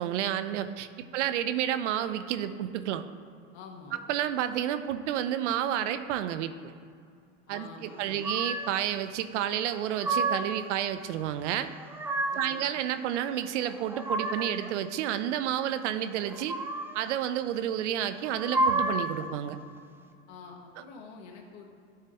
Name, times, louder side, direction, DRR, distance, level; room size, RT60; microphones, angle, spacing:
voice 1, 0.0-3.0 3.9-6.7 7.5-11.7 12.3-16.6 16.9-19.6, right 11 dB, 65° right, 11 dB, 0.7 m, -30 dB
voice 2, 3.5-4.0 7.5-8.2 12.3-12.7 20.3-21.7, left 4 dB, 60° left, 1 dB, 1.9 m, -47 dB
sound 1, 8.2-8.8 9.7-10.7 11.6-12.6 13.6-14.7 16.2-17.1 18.2-19.2, right 2 dB, 5° right, 0.4 m, -31 dB
12.0 x 6.6 x 3.0 m, 2.3 s
hypercardioid pair, 105°, 38 cm